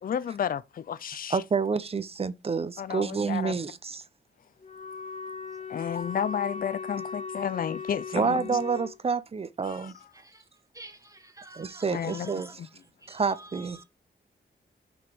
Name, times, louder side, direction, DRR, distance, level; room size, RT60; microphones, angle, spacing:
voice 1, 0.0-1.4 2.8-3.5 5.7-8.6 11.9-12.3 12.6-12.7, left 8 dB, 50° left, 0.4 m, -32 dB
voice 2, 1.3-4.0 8.1-9.9 11.6-12.5 13.1-13.8, right 5 dB, 35° right, 0.5 m, -28 dB
Wind instrument woodwind instrument, 4.6-9.0, left 5 dB, 35° left, 0.9 m, -38 dB
voice 3, 10.1-10.5 10.7-12.6 13.0-13.8, right 2 dB, 20° right, 1.2 m, -49 dB
6.0 x 3.5 x 4.5 m
wide cardioid pair, 175°, 18 cm